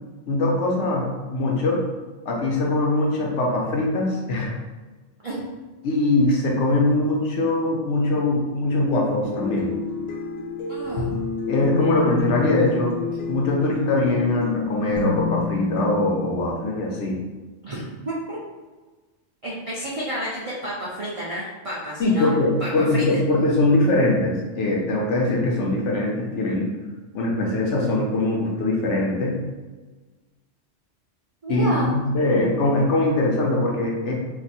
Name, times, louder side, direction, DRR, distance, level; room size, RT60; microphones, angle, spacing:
voice 1, 0.3-1.8 2.3-4.5 5.8-9.8 11.5-12.9 13.3-17.2 22.0-26.7 27.1-29.4 31.5-34.1, left 2 dB, 70° left, -1 dB, 1.0 m, -22 dB
sound 1, 9.2-16.5, left 5 dB, 90° left, 0.3 m, -29 dB
voice 2, 10.7-11.1 17.6-18.4 19.4-22.3 22.6-23.0 31.4-31.9, right 1 dB, 50° right, -7 dB, 0.4 m, -30 dB
2.6 x 2.5 x 4.1 m, 1.3 s
omnidirectional pair, 1.3 m